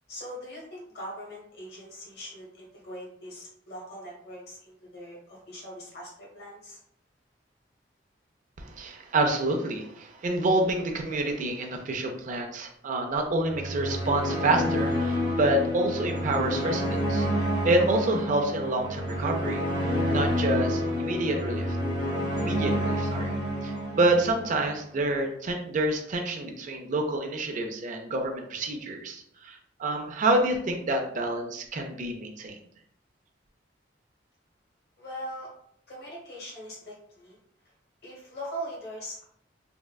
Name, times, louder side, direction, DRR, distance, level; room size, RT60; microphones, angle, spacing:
voice 1, 0.1-6.8 35.0-35.5 35.9-37.4 38.0-39.2, equal, 60° left, -4 dB, 1.3 m, -41 dB
voice 2, 8.6-21.8 22.4-23.3 23.6-32.6, right 2 dB, 45° right, 3 dB, 0.4 m, -28 dB
sound 1, 13.5-24.8, equal, 25° right, 0.8 m, -29 dB
3.5 x 2.1 x 2.2 m, 0.67 s
head